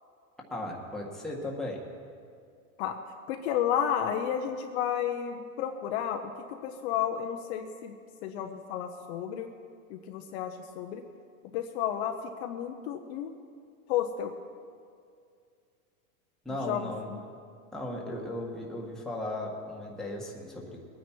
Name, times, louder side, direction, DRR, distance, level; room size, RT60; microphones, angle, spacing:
voice 1, 0.5-1.8 16.4-17.1 17.7-20.8, left 1 dB, ahead, -3 dB, 1.6 m, -36 dB
voice 2, 3.3-8.0 8.2-9.5 9.9-11.0 11.5-13.4 13.9-14.3 16.7-17.2, left 9 dB, 50° left, 4 dB, 1.0 m, -32 dB
21.5 x 9.6 x 4.6 m, 2.2 s
supercardioid pair, 150°, 44 cm